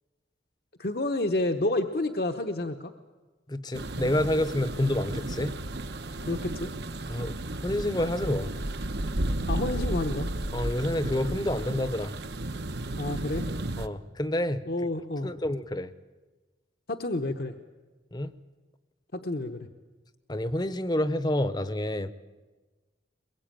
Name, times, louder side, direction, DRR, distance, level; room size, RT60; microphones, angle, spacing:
voice 1, 0.8-2.9 6.3-6.7 9.5-10.3 13.0-13.5 14.7-15.3 16.9-17.5 19.1-19.7, left 2 dB, 55° left, 5 dB, 1.0 m, -29 dB
voice 2, 3.5-5.6 7.1-8.5 10.5-12.1 13.8-14.6 15.2-15.9 18.1-18.3 20.3-22.1, left 1 dB, 20° left, 13 dB, 0.8 m, -28 dB
sound 1, 3.7-13.9, right 1 dB, 65° right, 1.0 m, -33 dB
22.5 x 22.0 x 9.0 m, 1.3 s
head